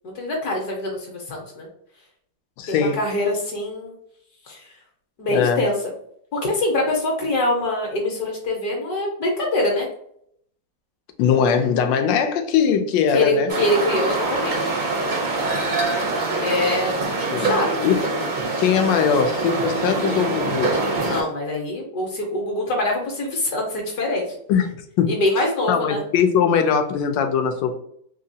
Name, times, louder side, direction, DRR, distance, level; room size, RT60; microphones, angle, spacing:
voice 1, 0.0-1.7 2.7-3.9 4.5-4.7 5.2-5.9 6.3-9.9 13.1-14.7 16.4-16.9 17.3-17.8 21.0-24.4 25.1-26.0, left 1 dB, 65° left, -1 dB, 1.3 m, -24 dB
voice 2, 2.6-3.0 5.3-5.6 11.2-13.5 17.3-17.5 17.8-18.3 18.6-20.8 21.0-21.2 24.5-24.7 25.0-25.1 25.7-27.8, left 7 dB, 90° left, 6 dB, 1.3 m, -20 dB
sound 1, 13.5-21.2, right 2 dB, 70° right, 0.4 m, -24 dB
3.6 x 2.9 x 2.7 m, 0.69 s
omnidirectional pair, 1.9 m